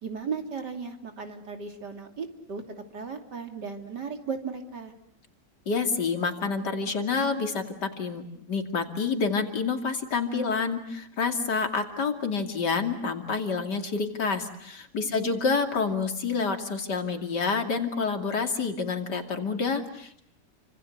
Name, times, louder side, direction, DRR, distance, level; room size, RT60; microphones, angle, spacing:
voice 1, 0.0-2.6 2.9-4.9 15.1-15.3, right 5 dB, 70° right, 5 dB, 3.4 m, -36 dB
voice 2, 5.7-20.2, left 4 dB, 70° left, 5 dB, 3.2 m, -28 dB
29.0 x 25.5 x 8.0 m, 0.67 s
omnidirectional pair, 1.9 m